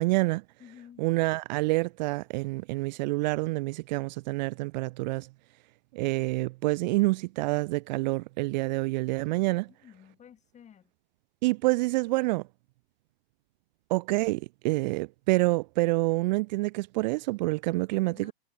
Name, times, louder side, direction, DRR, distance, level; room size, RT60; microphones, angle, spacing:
voice 1, 0.0-0.4 1.0-5.3 5.9-9.7 11.4-12.4 13.9-18.3, right 23 dB, 45° right, 0.6 m, -27 dB
voice 2, 0.6-1.0 9.2-9.4 9.7-10.9 18.1-18.3, left 9 dB, 20° left, 3.6 m, -53 dB
hypercardioid pair, 120°, 32 cm